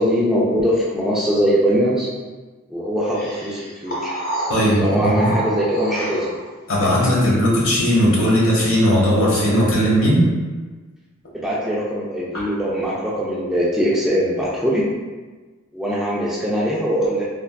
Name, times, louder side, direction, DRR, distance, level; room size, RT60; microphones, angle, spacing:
voice 1, 0.0-2.1 2.7-4.1 4.8-6.3 11.3-14.8 15.7-17.2, equal, 5° right, -7 dB, 0.3 m, -21 dB
sound 1, 3.1-6.5, right 1 dB, 45° left, 0.8 m, -29 dB
voice 2, 4.5-5.3 6.7-10.2 12.3-12.4, equal, 80° left, -6 dB, 1.1 m, -17 dB
3.4 x 2.3 x 2.2 m, 1.3 s
head